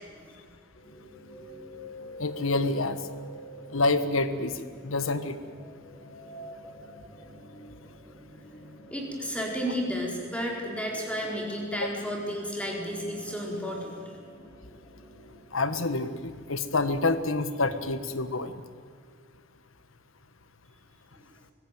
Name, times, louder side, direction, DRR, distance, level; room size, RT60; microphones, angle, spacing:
sound 1, 0.7-15.4, equal, 45° left, 5.8 m, -48 dB
voice 1, 2.2-3.0 3.7-4.5 4.8-5.4 11.8-11.9 15.5-18.5, left 3 dB, 75° left, 11 dB, 1.4 m, -27 dB
voice 2, 8.9-14.1, equal, 5° left, -1 dB, 4.5 m, -32 dB
24.0 x 16.0 x 9.2 m, 2.2 s
head